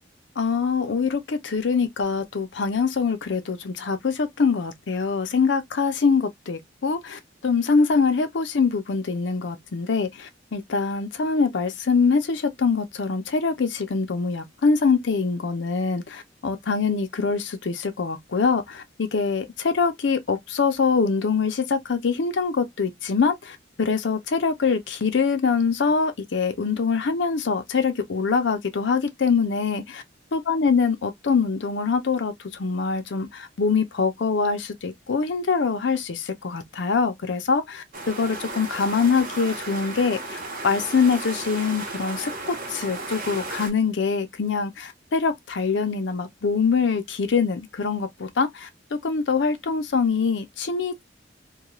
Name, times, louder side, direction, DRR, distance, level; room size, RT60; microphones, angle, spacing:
voice 1, 0.4-30.0 30.3-40.4 40.6-51.0, left 5 dB, 70° left, 0.5 m, -24 dB
sound 1, 37.9-43.7, right 2 dB, 45° right, 0.8 m, -34 dB
2.3 x 2.2 x 2.9 m
head